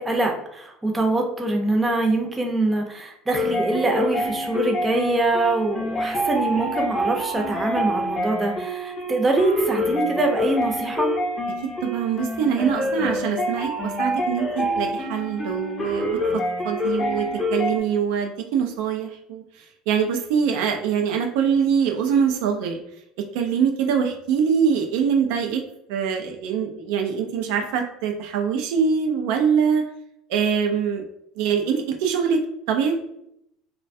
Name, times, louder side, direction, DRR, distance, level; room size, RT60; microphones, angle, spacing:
voice 1, 0.0-11.1, right 2 dB, 15° right, 1 dB, 0.6 m, -24 dB
sound 1, 3.3-17.8, equal, 30° left, 0.7 m, -26 dB
voice 2, 11.8-16.2 16.6-19.4 19.9-22.8 23.3-25.6 25.9-29.8 30.3-31.0 31.4-32.4 32.7-33.0, right 7 dB, 75° right, 3 dB, 0.3 m, -23 dB
2.2 x 2.1 x 2.5 m, 0.76 s
supercardioid pair, 90°, 0 cm